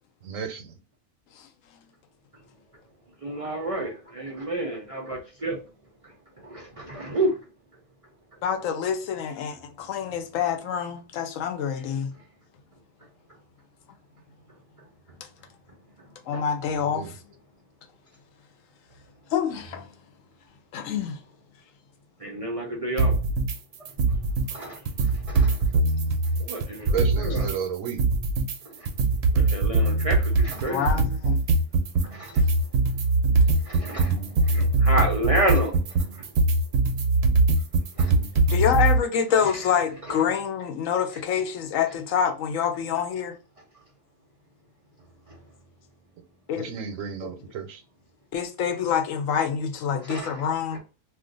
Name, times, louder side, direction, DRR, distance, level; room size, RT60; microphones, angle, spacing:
voice 1, 0.2-0.8 16.9-17.1 26.9-28.0 46.6-47.8, right 7 dB, 80° right, 1.0 m, -32 dB
voice 2, 3.2-5.6 6.0-7.4 16.3-16.4 22.2-23.2 24.5-25.6 26.4-27.5 28.6-28.9 29.3-31.0 32.0-32.4 33.6-36.3 37.9-38.2 40.1-40.2 45.3-45.4 50.0-50.5 50.7-50.8, right 1 dB, 45° right, 0.4 m, -30 dB
voice 3, 8.4-12.1 16.3-17.2 19.3-19.9 20.7-21.2 30.7-31.4 38.5-43.4 46.5-46.8 47.2-47.3 48.3-50.8, left 7 dB, 80° left, 1.0 m, -26 dB
sound 1, 23.0-23.6 23.9-24.6 24.9-27.6 27.9-39.0, right 3 dB, 65° right, 0.8 m, -22 dB
2.4 x 2.4 x 3.7 m
omnidirectional pair, 1.3 m